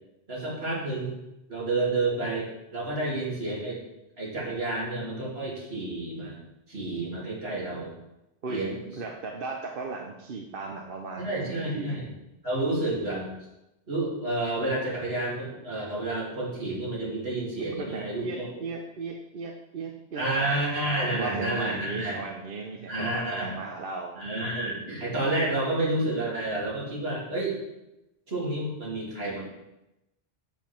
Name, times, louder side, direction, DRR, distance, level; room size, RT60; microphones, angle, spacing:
voice 1, 0.3-1.1 1.5-3.8 4.2-6.4 6.7-7.9 8.5-8.8 11.2-12.1 12.4-13.3 13.9-18.5 20.1-22.2 22.9-23.5 24.2-27.6 28.3-29.4, right 2 dB, 80° right, -5 dB, 3.0 m, -30 dB
voice 2, 9.0-11.9 17.8-20.6 20.8-24.2, right 4 dB, 60° right, 2 dB, 1.0 m, -36 dB
7.4 x 7.3 x 4.4 m, 0.91 s
omnidirectional pair, 1.0 m